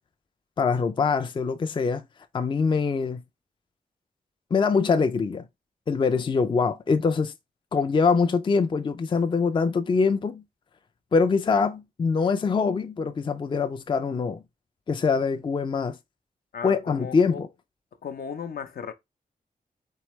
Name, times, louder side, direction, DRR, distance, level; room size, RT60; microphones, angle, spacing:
voice 1, 0.6-2.0 2.3-3.2 4.5-5.5 5.9-7.3 7.7-10.4 11.1-14.4 14.9-16.0 16.6-17.5, left 5 dB, 30° left, 0.4 m, -24 dB
voice 2, 16.5-17.4 18.0-18.9, left 7 dB, 70° left, 0.7 m, -36 dB
4.6 x 3.8 x 3.1 m
wide cardioid pair, 180°, 16 cm